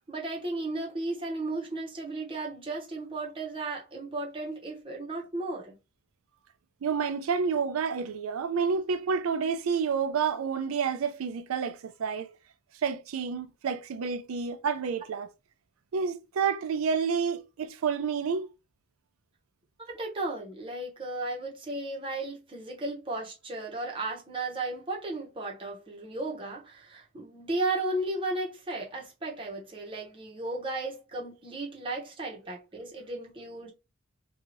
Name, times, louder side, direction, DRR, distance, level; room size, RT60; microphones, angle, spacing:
voice 1, 0.0-5.8 19.8-33.7, right 2 dB, 25° right, 0.8 m, -35 dB
voice 2, 6.8-12.3 12.8-15.3 15.9-18.5, right 6 dB, 85° right, 0.4 m, -29 dB
2.7 x 2.3 x 3.0 m
head